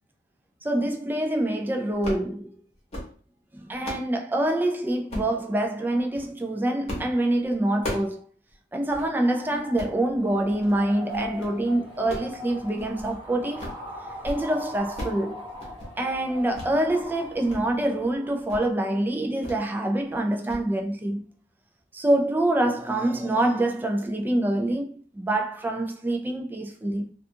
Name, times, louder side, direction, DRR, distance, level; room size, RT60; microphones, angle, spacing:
voice 1, 0.6-2.5 3.5-8.2 8.7-13.7 14.2-15.4 16.0-21.2 21.9-27.1, right 1 dB, 10° right, 0.3 m, -26 dB
sound 1, 2.0-2.3 2.7-3.1 3.5-4.1 5.1-5.4 6.0-6.3 6.9-7.1 7.4-8.2 8.5-8.6 8.9-9.1 9.6-10.0 10.5-10.8 11.1-11.5 11.9-13.2 13.4-13.8 14.1-14.4 14.7-15.2 15.5-15.9 16.5-16.7 17.1-17.6 17.9-18.1 18.5-18.7 19.4-19.7 20.0-20.2 20.5-20.6, left 1 dB, 35° left, 0.9 m, -36 dB
sound 2, 9.0-18.7, left 1 dB, 25° right, 0.8 m, -41 dB
2.4 x 2.3 x 2.7 m
head